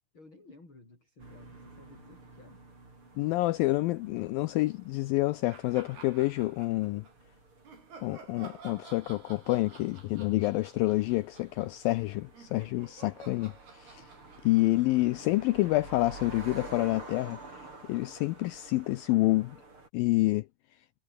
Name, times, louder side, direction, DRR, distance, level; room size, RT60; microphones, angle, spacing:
voice 1, 0.1-2.6 20.2-20.4, left 2 dB, 30° left, 8.3 m, -55 dB
sound 1, 1.2-19.9, right 3 dB, 30° right, 7.1 m, -50 dB
voice 2, 3.2-7.1 8.0-14.1 14.4-19.6 19.9-20.4, left 19 dB, 80° left, 2.1 m, -28 dB
sound 2, 5.5-7.1 7.6-15.9, right 5 dB, 70° right, 8.1 m, -52 dB
omnidirectional pair, 4.7 m